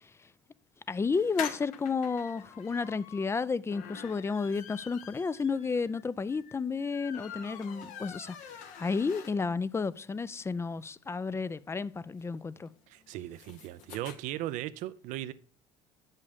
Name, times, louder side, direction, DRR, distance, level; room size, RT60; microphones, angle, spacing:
voice 1, 0.9-12.7, left 4 dB, 20° left, 0.4 m, -32 dB
sound 1, 1.1-9.7 10.1-10.2 10.4-10.5 10.8-14.2, left 8 dB, 65° left, 1.1 m, -46 dB
voice 2, 12.9-15.3, right 14 dB, 65° right, 0.5 m, -37 dB
8.1 x 5.5 x 5.2 m
hypercardioid pair, 75°, 14 cm